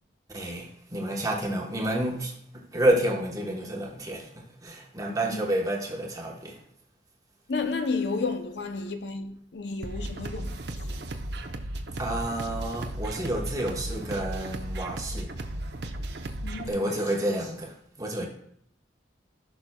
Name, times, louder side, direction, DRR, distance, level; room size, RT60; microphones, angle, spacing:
voice 1, 0.3-6.6 12.0-15.3 16.7-18.3, right 1 dB, 20° right, 1.0 m, -29 dB
voice 2, 5.1-5.6 7.5-11.0 16.4-17.0, left 4 dB, 60° left, 0.5 m, -32 dB
sound 1, 9.8-16.7, right 1 dB, 60° right, 0.7 m, -35 dB
15.0 x 6.0 x 2.2 m
head